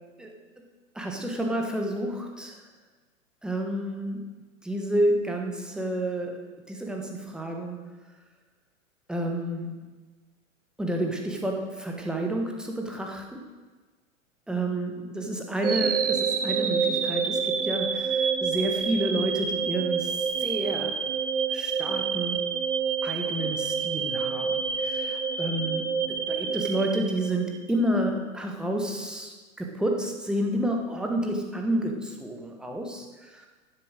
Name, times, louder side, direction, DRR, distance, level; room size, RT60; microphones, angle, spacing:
voice 1, 0.9-2.6 3.4-4.2 4.6-7.9 9.1-9.9 10.8-13.5 14.5-21.0 21.5-22.5 23.0-33.5, right 1 dB, ahead, 1 dB, 1.2 m, -30 dB
sound 1, 15.6-27.8, right 6 dB, 65° right, 1.2 m, -28 dB
11.0 x 7.5 x 6.4 m, 1.3 s
figure-of-eight pair, 105°, 40 cm